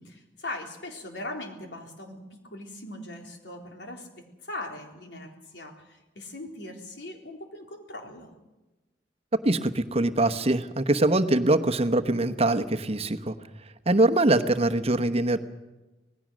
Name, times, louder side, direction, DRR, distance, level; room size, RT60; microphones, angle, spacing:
voice 1, 0.4-4.1 4.4-8.3, left 1 dB, 90° left, 2 dB, 3.8 m, -40 dB
voice 2, 9.3-13.4 13.9-15.4, right 2 dB, 35° right, 9 dB, 1.0 m, -23 dB
26.0 x 18.5 x 6.3 m, 1.1 s
head